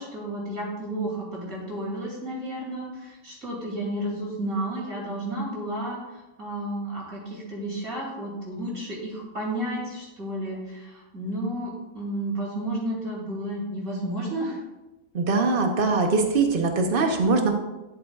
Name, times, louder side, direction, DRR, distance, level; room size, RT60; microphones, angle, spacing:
voice 1, 0.0-6.0 6.4-14.6, right 1 dB, 60° right, -3 dB, 3.2 m, -32 dB
voice 2, 15.1-17.6, right 3 dB, 40° right, 4 dB, 1.0 m, -22 dB
11.5 x 7.9 x 2.4 m, 1.1 s
omnidirectional pair, 1.6 m